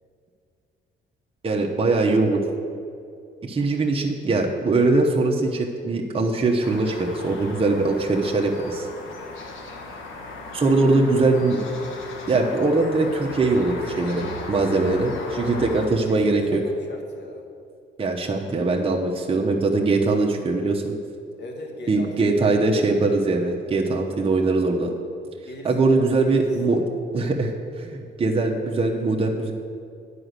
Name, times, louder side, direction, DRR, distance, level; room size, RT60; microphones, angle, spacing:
voice 1, 1.4-2.4 3.4-8.9 10.5-11.6 12.3-15.1 15.4-16.6 18.0-20.8 21.9-24.9 25.6-26.8 27.1-29.5, right 3 dB, 30° right, 0 dB, 0.9 m, -21 dB
sound 1, 6.6-15.9, left 2 dB, 80° left, 1.4 m, -37 dB
voice 2, 10.6-11.0 14.6-17.4 21.4-23.0 25.5-26.5, left 2 dB, 60° left, 2 dB, 1.8 m, -39 dB
9.8 x 5.1 x 8.1 m, 2.5 s
cardioid pair, 90°, 20 cm